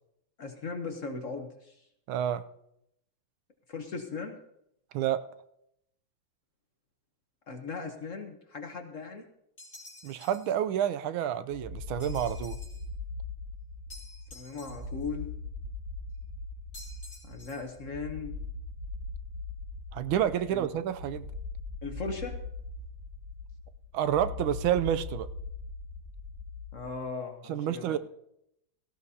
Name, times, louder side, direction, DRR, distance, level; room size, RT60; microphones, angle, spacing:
voice 1, 0.4-1.8 3.7-4.4 7.5-9.3 14.3-15.3 17.2-18.4 20.5-20.7 21.8-22.3 26.7-28.0, left 4 dB, 50° left, 4 dB, 1.1 m, -38 dB
voice 2, 2.1-2.4 4.9-5.3 10.0-12.6 19.9-21.3 23.9-25.3 27.5-28.0, right 10 dB, 85° right, 12 dB, 1.4 m, -29 dB
sound 1, 9.6-10.6 12.0-12.9 13.9-15.1 16.7-17.7, left 1 dB, 30° left, 2.8 m, -50 dB
sound 2, 11.5-27.0, left 3 dB, 40° right, 3.6 m, -40 dB
17.5 x 14.0 x 2.8 m, 0.79 s
omnidirectional pair, 2.2 m